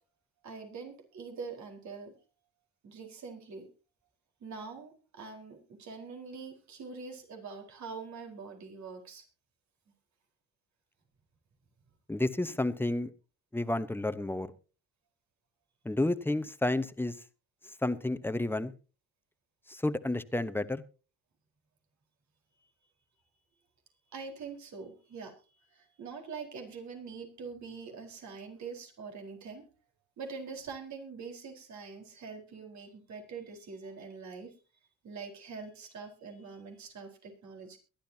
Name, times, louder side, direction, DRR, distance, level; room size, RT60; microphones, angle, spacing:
voice 1, 0.4-2.1 2.8-3.7 4.4-9.2 24.1-29.6 30.2-34.5 35.0-37.8, right 5 dB, 65° right, 3 dB, 4.4 m, -44 dB
voice 2, 12.1-13.1 13.5-14.5 15.8-17.1 17.8-18.7 19.7-20.8, left 2 dB, 5° left, 13 dB, 1.0 m, -31 dB
22.5 x 11.5 x 2.8 m, 0.33 s
cardioid pair, 90°, 30 cm